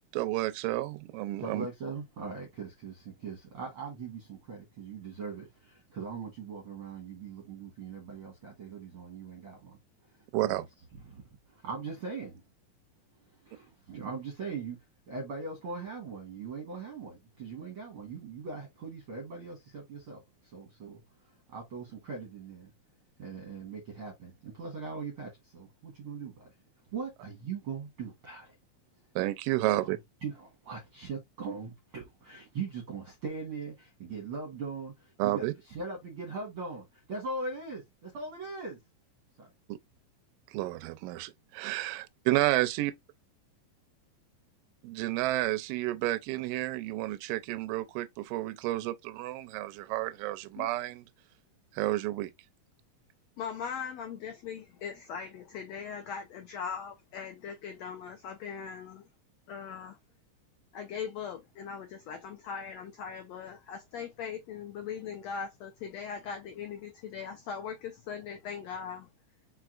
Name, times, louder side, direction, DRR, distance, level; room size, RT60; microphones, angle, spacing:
voice 1, 0.1-1.7 10.3-10.6 29.2-30.0 35.2-35.5 39.7-39.8 40.5-42.9 44.8-51.0 51.7-52.3, right 17 dB, 85° right, 2.2 m, -31 dB
voice 2, 1.4-9.8 10.1-10.6 10.9-12.4 13.4-14.8 15.1-22.7 23.2-26.5 26.9-28.6 30.2-38.8 39.4-39.5, right 4 dB, 50° right, 1.8 m, -40 dB
voice 3, 53.4-59.0 59.5-60.0 60.7-69.1, left 7 dB, 85° left, 1.5 m, -40 dB
4.7 x 4.6 x 2.4 m
omnidirectional pair, 4.0 m